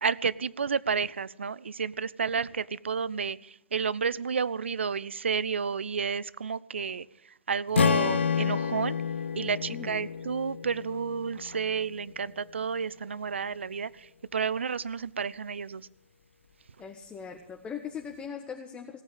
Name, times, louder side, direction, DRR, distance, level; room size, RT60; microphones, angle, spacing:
voice 1, 0.0-7.1 7.5-9.0 9.4-15.8, right 6 dB, 75° right, 21 dB, 0.5 m, -31 dB
Strum, 7.7-12.0, left 6 dB, 75° left, 0.7 m, -29 dB
voice 2, 9.7-10.1 16.8-19.0, left 7 dB, 15° left, 2 dB, 1.5 m, -40 dB
17.5 x 9.1 x 9.0 m, 0.80 s
figure-of-eight pair, 105°, 6 cm